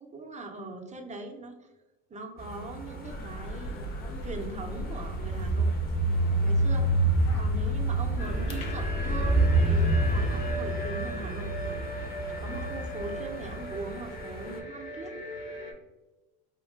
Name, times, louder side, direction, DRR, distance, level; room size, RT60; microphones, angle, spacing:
voice 1, 0.0-1.7 2.1-3.9 4.2-5.7 6.0-6.9 7.3-11.8 12.4-15.2, right 2 dB, 15° right, 3 dB, 0.4 m, -41 dB
sound 1, 2.4-14.6, right 2 dB, 20° left, 0.6 m, -29 dB
sound 2, 3.1-10.5, left 1 dB, 85° left, 0.6 m, -37 dB
sound 3, 8.2-15.7, equal, 60° left, 1.2 m, -38 dB
4.4 x 2.3 x 2.2 m, 1.1 s
supercardioid pair, 100°, 45 cm